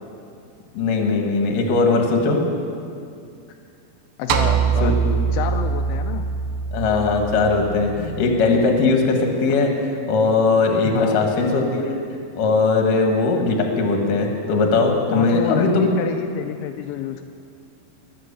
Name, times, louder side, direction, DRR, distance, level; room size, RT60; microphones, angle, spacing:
voice 1, 0.7-2.4 4.8-4.9 6.7-12.0 12.4-15.9, left 3 dB, 60° left, 2 dB, 2.7 m, -19 dB
voice 2, 4.2-5.0 5.3-6.3 10.8-11.2 15.1-17.2, left 10 dB, 85° left, 6 dB, 2.9 m, -28 dB
sound 1, 4.3-8.7, right 6 dB, 80° right, 2.3 m, -23 dB
22.0 x 7.8 x 6.8 m, 2.4 s
omnidirectional pair, 5.4 m